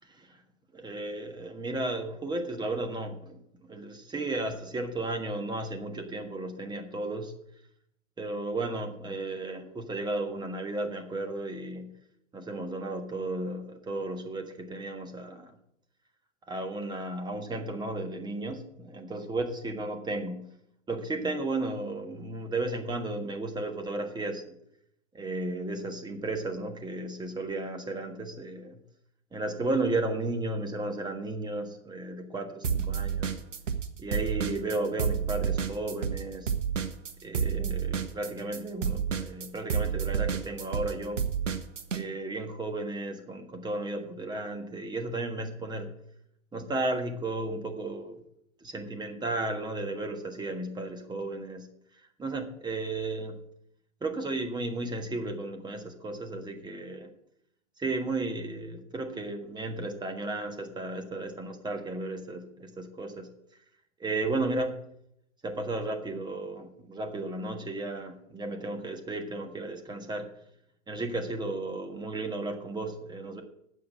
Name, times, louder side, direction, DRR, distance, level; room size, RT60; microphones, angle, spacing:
voice 1, 0.7-7.3 8.2-11.9 12.3-15.5 16.5-20.5 20.9-24.6 25.1-28.8 29.3-33.4 34.0-36.5 37.2-41.2 41.9-45.9 46.5-48.2 48.6-51.7 51.9-53.4 54.0-57.1 57.8-63.3 64.0-64.8 65.4-70.3 70.9-73.4, right 2 dB, 10° right, 5 dB, 1.5 m, -34 dB
sound 1, 32.6-33.9 34.1-42.0, right 7 dB, 80° right, 1.3 m, -29 dB
8.5 x 7.3 x 8.6 m, 0.75 s
hypercardioid pair, 105°, 37 cm